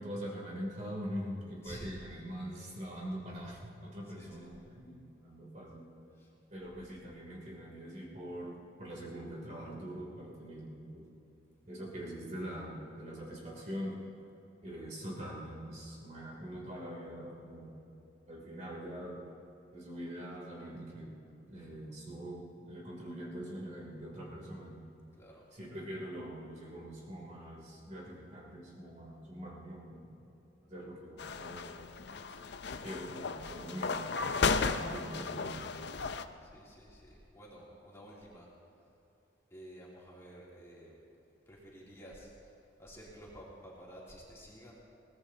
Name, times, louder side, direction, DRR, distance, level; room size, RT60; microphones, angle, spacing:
voice 1, 0.0-5.9 6.5-8.5 8.8-11.1 11.6-14.0 14.6-17.8 18.3-19.2 19.7-21.1 21.5-24.8 25.5-30.2 30.6-31.8 32.6-34.1 34.4-35.7 36.3-36.4, equal, 40° right, -3 dB, 3.0 m, -43 dB
voice 2, 1.6-1.9 4.0-4.6 6.2-6.3 25.1-25.4 36.4-38.5 39.5-41.0 41.5-42.3 42.8-44.8, equal, 15° left, -6 dB, 2.9 m, -51 dB
sound 1, 31.2-36.2, left 4 dB, 60° left, 0.5 m, -35 dB
22.5 x 18.5 x 2.8 m, 2.8 s
head